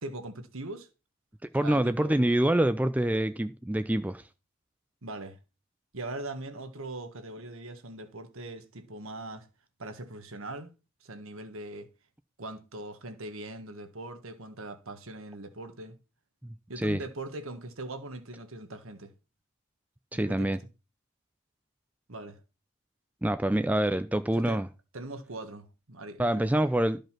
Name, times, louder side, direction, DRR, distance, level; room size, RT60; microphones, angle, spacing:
voice 1, 0.0-0.9 1.6-2.1 5.0-5.4 5.9-9.5 9.8-10.7 11.0-11.9 12.4-16.0 16.7-19.1 20.1-20.5 22.1-22.4 24.4-24.6 24.9-26.5, right 2 dB, 65° right, 1.5 m, -41 dB
voice 2, 1.5-4.2 16.4-17.0 20.1-20.6 23.2-24.7 26.2-27.0, right 1 dB, 5° right, 0.4 m, -26 dB
13.0 x 5.3 x 5.9 m
head